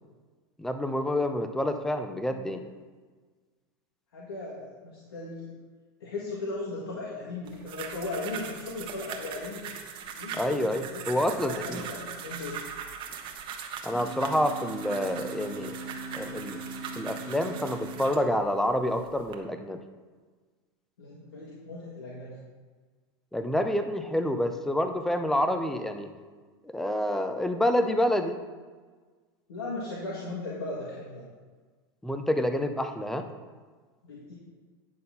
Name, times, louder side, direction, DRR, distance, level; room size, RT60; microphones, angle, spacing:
voice 1, 0.6-2.7 10.3-11.8 13.8-15.8 16.1-16.6 17.0-19.8 23.3-26.1 26.6-28.4 32.0-33.3, left 1 dB, 5° left, 7 dB, 0.6 m, -28 dB
voice 2, 4.1-5.5 6.0-9.7 10.1-12.6 21.0-22.4 29.5-31.2 34.0-34.3, left 2 dB, 90° left, -6 dB, 1.7 m, -37 dB
sound 1, 7.4-18.3 18.9-19.3, right 7 dB, 40° right, 1.1 m, -40 dB
sound 2, 13.9-18.6, right 3 dB, 25° right, 1.5 m, -41 dB
9.6 x 3.9 x 5.7 m, 1.4 s
hypercardioid pair, 115°, 13 cm